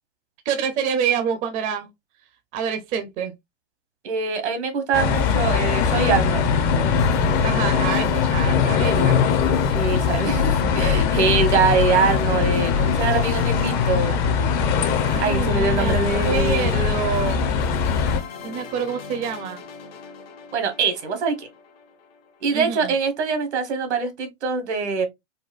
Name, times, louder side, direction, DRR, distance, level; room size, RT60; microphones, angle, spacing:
voice 1, 0.5-1.9 2.5-3.3 7.4-9.2 15.0-15.9 16.2-17.4 18.4-19.6 22.5-22.9, right 7 dB, 25° right, 0.5 m, -27 dB
voice 2, 4.0-6.5 9.7-14.2 15.2-16.8 20.5-21.5 22.4-25.1, right 5 dB, 80° right, 1.2 m, -23 dB
sound 1, 4.9-18.2, left 6 dB, 30° left, 0.5 m, -21 dB
sound 2, 5.1-22.5, left 5 dB, 60° left, 0.9 m, -38 dB
4.1 x 2.1 x 2.3 m
hypercardioid pair, 125°, 34 cm